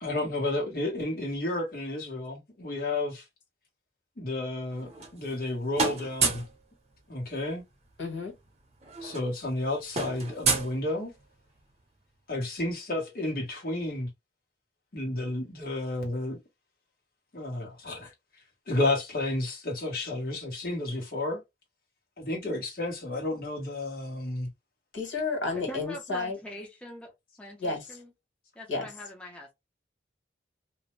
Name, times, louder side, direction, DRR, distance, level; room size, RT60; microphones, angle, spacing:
voice 1, 0.0-3.2 4.2-6.4 7.1-7.6 9.0-11.1 12.3-14.1 14.9-16.4 17.3-18.1 18.7-21.4 22.2-24.5, left 2 dB, 50° left, 1.2 m, -31 dB
sound 1, 4.7-5.5 5.7-6.6 7.9-8.0 8.3-8.5 8.8-11.4, right 4 dB, 35° right, 0.7 m, -30 dB
voice 2, 8.0-8.3 24.9-26.4 27.6-27.9 28.7-28.9, left 3 dB, 85° left, 1.5 m, -31 dB
voice 3, 25.7-27.1 27.4-28.1 28.6-29.5, equal, 5° left, 0.6 m, -43 dB
2.6 x 2.1 x 3.1 m
head